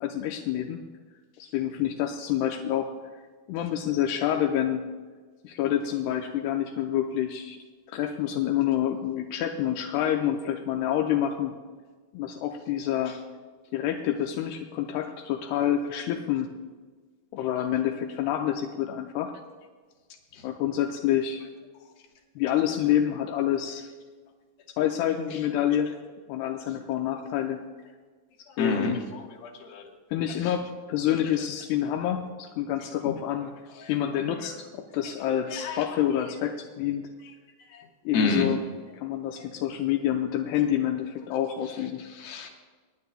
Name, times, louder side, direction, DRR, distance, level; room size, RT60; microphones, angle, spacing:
voice 1, 0.0-0.8 1.5-2.9 3.5-4.8 5.4-7.6 7.9-11.5 12.1-13.1 13.7-16.5 17.3-19.3 20.4-21.4 22.4-23.8 24.8-25.9 26.3-27.6 28.6-29.0 30.1-33.5 33.9-37.0 38.1-38.6 38.9-42.0, left 10 dB, 80° left, 3 dB, 2.5 m, -27 dB
voice 2, 28.6-28.9 29.4-29.8 35.5-35.8 38.1-38.5 42.2-42.5, left 3 dB, 65° left, 2 dB, 2.9 m, -27 dB
25.0 x 10.5 x 2.2 m, 1.4 s
omnidirectional pair, 5.0 m